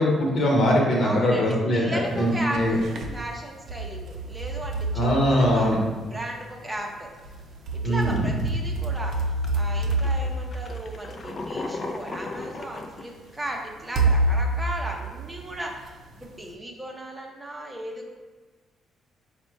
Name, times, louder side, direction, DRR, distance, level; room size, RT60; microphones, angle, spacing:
voice 1, 0.0-2.7 4.9-5.8 7.8-8.3, equal, 60° left, -2 dB, 1.0 m, -22 dB
voice 2, 1.0-2.8 3.1-5.8 6.1-7.1 7.7-18.1, right 1 dB, 15° right, 0 dB, 0.6 m, -36 dB
sound 1, 2.2-3.2 3.7-6.1 7.2-11.7 12.5-12.6 14.0-15.9, right 2 dB, 65° right, 0.5 m, -28 dB
sound 2, 7.2-7.4 7.9-8.4 9.0-9.1 9.4-13.5, left 3 dB, 40° left, 0.4 m, -36 dB
4.1 x 2.2 x 4.5 m, 1.3 s
cardioid pair, 90°, 0 cm